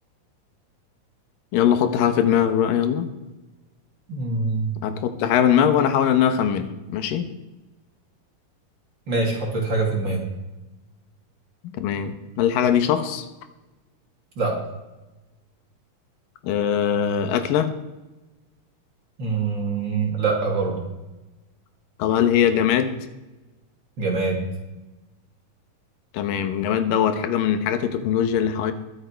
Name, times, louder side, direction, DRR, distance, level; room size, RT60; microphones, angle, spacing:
voice 1, 1.5-3.1 4.8-7.3 11.6-13.3 16.4-17.7 22.0-23.0 26.1-28.7, left 9 dB, 85° left, 9 dB, 2.8 m, -21 dB
voice 2, 4.1-4.7 9.1-10.3 14.4-14.6 19.2-20.8 24.0-24.4, right 3 dB, 35° right, -1 dB, 2.9 m, -24 dB
23.0 x 7.9 x 4.5 m, 1.1 s
omnidirectional pair, 3.9 m